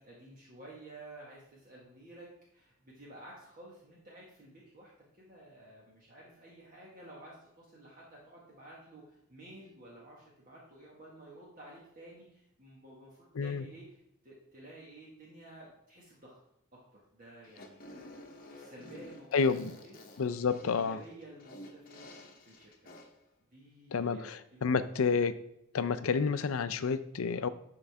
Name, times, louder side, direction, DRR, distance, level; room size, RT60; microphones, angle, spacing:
voice 1, 0.0-16.4 16.7-18.0 18.5-20.0 20.6-22.1 22.4-22.9 23.5-24.9, right 1 dB, 40° right, -5 dB, 1.6 m, -53 dB
Fart, 17.4-23.2, left 1 dB, 45° left, 0.9 m, -51 dB
voice 2, 19.3-19.7 20.2-21.0 23.9-25.4 25.7-27.5, left 5 dB, 75° left, 12 dB, 0.5 m, -30 dB
11.0 x 3.8 x 3.4 m, 0.78 s
head